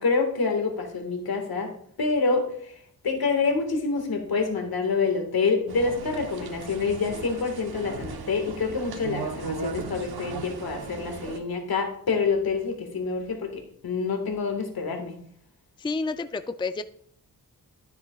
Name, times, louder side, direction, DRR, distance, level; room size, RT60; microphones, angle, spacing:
voice 1, 0.0-1.7 2.0-2.5 3.0-13.5 13.8-15.1, left 4 dB, 75° left, 4 dB, 1.8 m, -27 dB
Office Ambience, 5.7-11.4, right 5 dB, 80° right, 1.1 m, -37 dB
voice 2, 15.8-16.8, left 3 dB, 15° left, 10 dB, 0.4 m, -29 dB
12.5 x 7.1 x 2.4 m, 0.62 s
cardioid pair, 70°, 37 cm